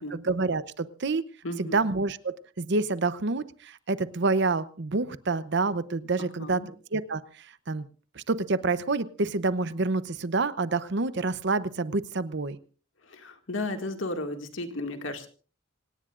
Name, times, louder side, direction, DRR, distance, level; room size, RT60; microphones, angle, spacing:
voice 1, 0.1-1.3 1.6-7.9 8.1-12.6, right 3 dB, 60° right, 15 dB, 0.8 m, -28 dB
voice 2, 1.4-1.8 6.4-6.7 13.0-15.3, left 2 dB, 75° left, 6 dB, 2.1 m, -34 dB
26.5 x 18.0 x 2.5 m, 0.38 s
head